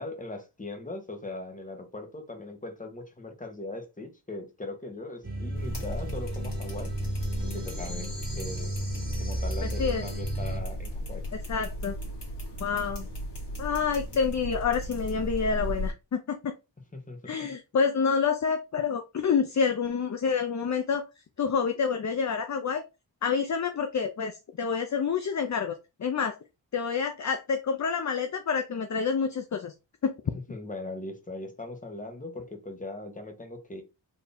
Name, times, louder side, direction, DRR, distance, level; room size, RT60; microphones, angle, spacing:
voice 1, 0.0-6.9 7.4-8.7 9.2-11.2 16.9-17.5 30.3-33.8, left 2 dB, 15° left, 1.1 m, -40 dB
sound 1, 5.2-10.6, right 1 dB, 20° right, 1.6 m, -33 dB
sound 2, 5.6-15.9, equal, 65° left, 2.1 m, -36 dB
voice 2, 11.3-12.0 12.6-13.1 13.6-16.5 17.3-21.0 21.4-22.8 23.2-26.3 26.7-29.7 30.0-30.1, left 6 dB, 40° left, 0.5 m, -28 dB
4.2 x 2.8 x 3.4 m
wide cardioid pair, 125°, 45 cm